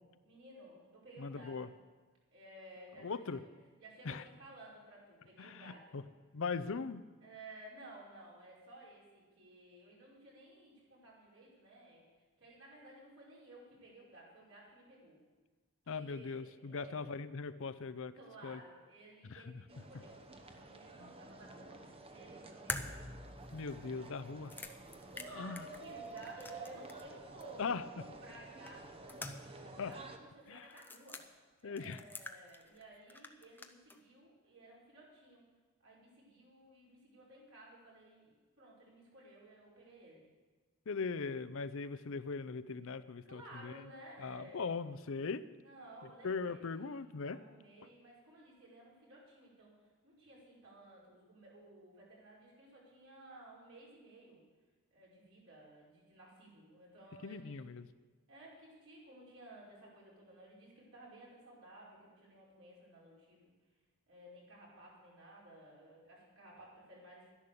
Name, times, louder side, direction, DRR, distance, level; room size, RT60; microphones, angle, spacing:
voice 1, 0.2-1.7 2.3-3.4 3.8-6.1 7.2-12.1 12.4-15.2 15.8-17.1 18.1-23.1 25.1-27.6 27.9-31.2 31.6-35.4 35.8-40.2 43.3-44.7 45.6-54.4 54.9-57.6 58.3-63.5 64.1-67.3, right 1 dB, 65° right, -5 dB, 5.3 m, -56 dB
voice 2, 1.2-1.7 3.0-3.4 4.0-4.2 5.4-6.0 6.3-7.0 15.9-18.2 18.4-18.6 19.2-19.6 21.0-21.1 23.5-24.5 25.3-25.6 27.6-27.8 29.8-29.9 30.5-30.7 31.6-32.0 40.9-43.7 44.2-45.5 46.2-47.4 57.2-57.9, left 4 dB, 60° left, 14 dB, 0.6 m, -40 dB
sound 1, 19.7-30.2, right 3 dB, 25° right, 0.9 m, -51 dB
sound 2, 22.7-27.1 27.4-27.5 28.7-29.7 29.9-30.0 30.7-31.2 31.8-32.8 33.1-34.0, left 2 dB, 10° left, 0.6 m, -46 dB
12.5 x 10.5 x 6.8 m, 1.4 s
head